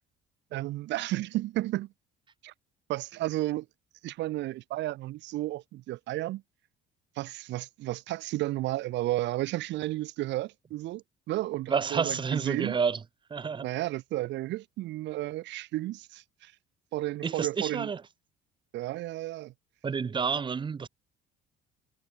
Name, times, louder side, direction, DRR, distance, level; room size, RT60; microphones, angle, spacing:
voice 1, 0.5-1.9 2.4-2.5 2.9-3.7 4.0-6.4 7.2-12.8 13.6-16.5 16.9-17.9 18.7-19.5, right 16 dB, 70° right, 2.0 m, -32 dB
voice 2, 11.7-13.0 13.3-13.7 17.2-18.0 19.8-20.9, right 6 dB, 25° right, 1.4 m, -29 dB
cardioid pair, 140°, 19 cm